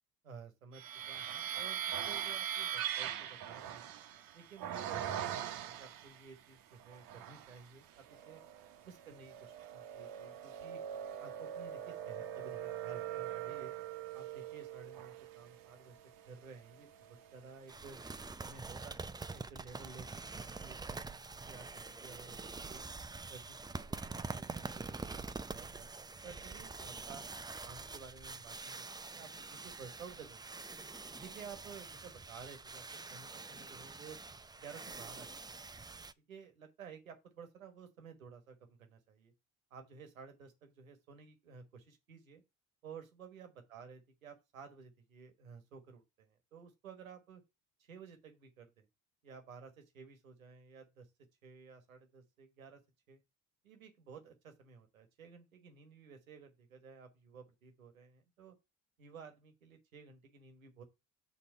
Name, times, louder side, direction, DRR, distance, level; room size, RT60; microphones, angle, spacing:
voice 1, 0.2-3.9 4.3-8.4 8.8-10.8 11.2-13.7 14.1-16.0 16.3-18.0 18.4-22.4 22.7-22.8 23.3-27.2 27.6-30.6 31.1-34.2 34.6-35.4 36.3-39.3 39.7-42.4 42.8-47.4 47.8-48.9 49.2-51.1 51.4-52.8 53.1-53.2 53.6-58.5 59.0-60.8, right 5 dB, 90° right, 1.4 m, -54 dB
sound 1, 0.7-6.2 6.8-7.6 8.1-17.3, right 10 dB, 55° right, 1.0 m, -42 dB
sound 2, 17.7-36.1, right 3 dB, 10° right, 0.5 m, -46 dB
6.7 x 3.9 x 6.3 m
hypercardioid pair, 55°, 40 cm